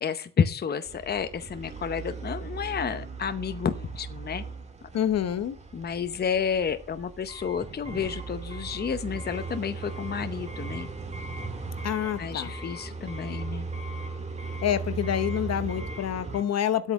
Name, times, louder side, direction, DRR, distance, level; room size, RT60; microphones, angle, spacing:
voice 1, 0.0-4.4 5.7-10.9 12.2-13.7, left 7 dB, 35° left, 10 dB, 0.8 m, -30 dB
sound 1, 0.9-16.4, right 3 dB, 20° right, 1.7 m, -37 dB
voice 2, 4.9-5.6 11.8-12.5 14.6-16.9, left 10 dB, 55° left, 12 dB, 1.0 m, -27 dB
8.6 x 8.3 x 6.1 m, 0.42 s
cardioid pair, 90°, 30 cm